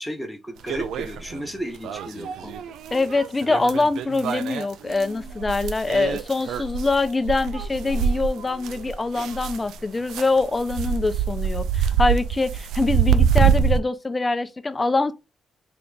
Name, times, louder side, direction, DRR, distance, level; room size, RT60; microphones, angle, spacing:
voice 1, 0.0-2.6, equal, ahead, 1.1 m, -34 dB
sound 1, 0.7-1.5 1.8-9.8 10.1-13.8, right 7 dB, 80° right, 0.3 m, -25 dB
voice 2, 2.9-15.1, left 3 dB, 20° left, 0.5 m, -24 dB
3.4 x 2.4 x 3.9 m
cardioid pair, 90°, 0 cm